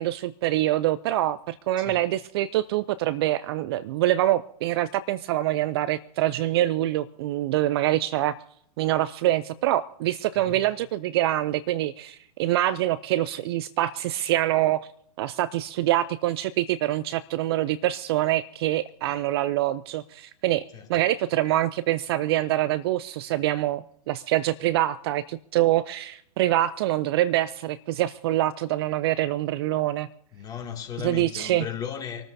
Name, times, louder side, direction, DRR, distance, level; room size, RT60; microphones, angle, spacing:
voice 1, 0.0-8.3 8.8-14.9 15.2-30.1 31.0-31.7, right 14 dB, 40° right, 17 dB, 0.4 m, -25 dB
voice 2, 30.3-32.2, left 8 dB, 20° left, 2 dB, 2.5 m, -35 dB
26.5 x 13.5 x 2.8 m, 0.69 s
figure-of-eight pair, 115°, 21 cm